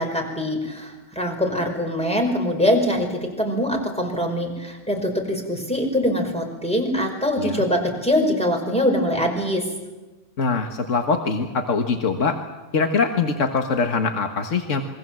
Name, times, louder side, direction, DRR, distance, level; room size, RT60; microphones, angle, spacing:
voice 1, 0.0-9.7, equal, 5° left, 2 dB, 5.2 m, -23 dB
voice 2, 10.4-12.4 12.7-14.8, left 4 dB, 80° left, 5 dB, 1.9 m, -23 dB
27.5 x 23.0 x 7.7 m, 1.1 s
omnidirectional pair, 1.3 m